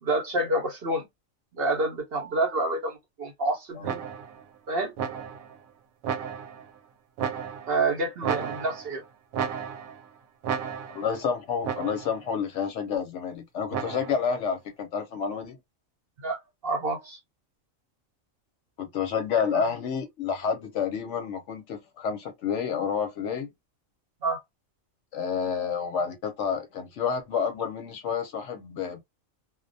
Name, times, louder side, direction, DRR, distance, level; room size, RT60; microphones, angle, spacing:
voice 1, 0.0-1.0 1.5-4.0 4.7-4.9 7.7-9.0 16.2-17.2 19.5-19.6 24.2-24.4, right 2 dB, 55° right, 0.7 m, -28 dB
sound 1, 3.8-4.4 5.0-5.6 6.0-6.7 7.2-7.8 8.2-9.0 9.3-10.1 10.4-11.1 11.6-12.2 13.7-14.3, right 7 dB, 90° right, 1.0 m, -33 dB
voice 2, 10.9-15.6 18.8-23.5 25.1-29.0, left 6 dB, 70° left, 0.9 m, -29 dB
2.3 x 2.1 x 2.5 m
omnidirectional pair, 1.4 m